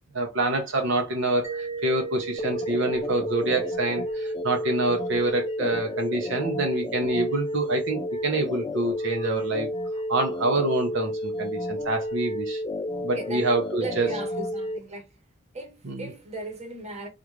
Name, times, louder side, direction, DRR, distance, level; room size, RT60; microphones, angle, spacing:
voice 1, 0.1-9.7 10.1-12.6 13.0-14.1 15.9-16.1, right 2 dB, 70° right, 0.7 m, -26 dB
Mallet percussion, 1.4-6.0, right 5 dB, 15° right, 0.7 m, -39 dB
sound 1, 2.4-14.8, equal, 25° left, 0.3 m, -31 dB
voice 2, 13.1-13.5 13.8-15.2 15.5-17.1, right 2 dB, 35° right, 1.1 m, -37 dB
3.6 x 2.5 x 3.0 m
head